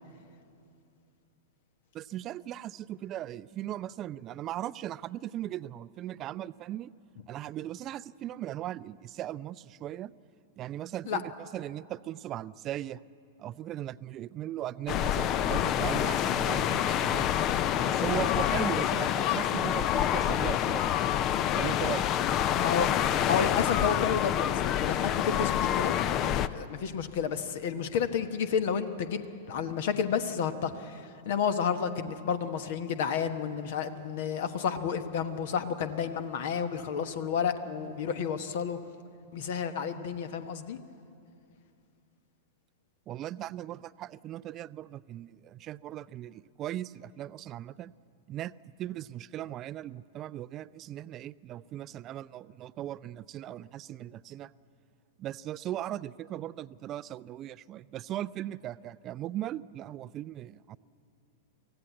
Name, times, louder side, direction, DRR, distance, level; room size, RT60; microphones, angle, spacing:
voice 1, 1.9-6.9 7.3-10.1 10.6-13.0 13.4-17.3 17.7-20.9 21.6-22.1 43.1-47.9 48.3-54.5 55.2-60.8, right 12 dB, 35° right, 18 dB, 0.4 m, -38 dB
sound 1, 14.9-26.5, left 10 dB, 35° left, 0.6 m, -27 dB
voice 2, 22.6-22.9 23.2-29.2 29.5-38.8 39.3-40.8, left 7 dB, 55° left, 10 dB, 1.3 m, -31 dB
24.0 x 16.0 x 8.3 m, 2.5 s
figure-of-eight pair, 100°, 0 cm